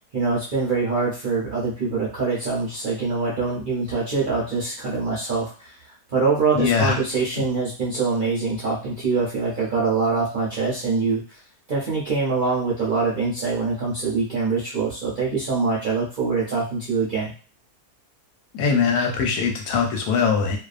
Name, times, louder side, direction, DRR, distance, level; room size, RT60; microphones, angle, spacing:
voice 1, 0.1-5.7 6.1-11.4 11.7-17.3, right 4 dB, 55° right, -6 dB, 0.5 m, -24 dB
voice 2, 6.6-7.0 18.5-20.6, left 5 dB, 90° left, 3 dB, 1.2 m, -21 dB
2.6 x 2.3 x 2.4 m, 0.36 s
omnidirectional pair, 1.7 m